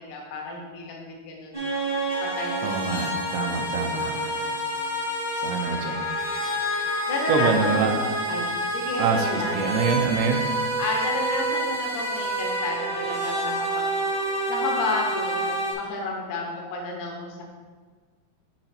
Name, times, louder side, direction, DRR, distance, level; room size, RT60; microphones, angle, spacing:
voice 1, 0.0-1.7 2.2-3.1 4.0-4.5 7.1-8.5 8.7-9.6 10.8-13.9 14.5-17.4, left 2 dB, 80° left, 0 dB, 1.7 m, -32 dB
sound 1, 1.5-15.7, right 1 dB, 45° right, 0.5 m, -28 dB
voice 2, 2.6-4.2 5.4-6.0 7.3-7.9 9.0-10.5, right 5 dB, 85° right, 2 dB, 2.8 m, -25 dB
9.4 x 3.9 x 4.3 m, 1.4 s
omnidirectional pair, 4.9 m